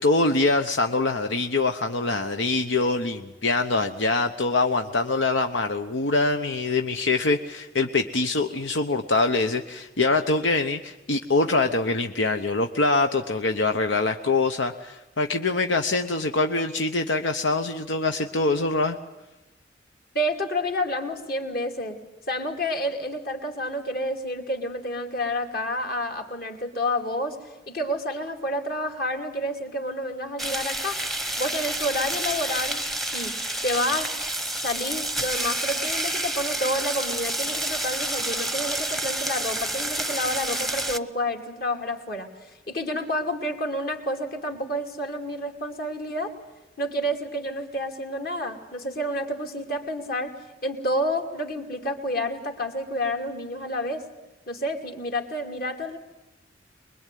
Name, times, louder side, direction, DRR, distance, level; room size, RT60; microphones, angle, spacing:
voice 1, 0.0-19.0, left 3 dB, 90° left, 6 dB, 1.0 m, -24 dB
voice 2, 20.1-22.0 22.3-31.0 31.4-33.3 33.6-34.1 34.6-46.3 46.8-50.3 50.6-54.1 54.5-56.0, left 1 dB, 55° left, 4 dB, 2.9 m, -29 dB
sound 1, 30.4-41.0, right 1 dB, ahead, 0.9 m, -29 dB
24.0 x 22.0 x 9.3 m, 0.98 s
head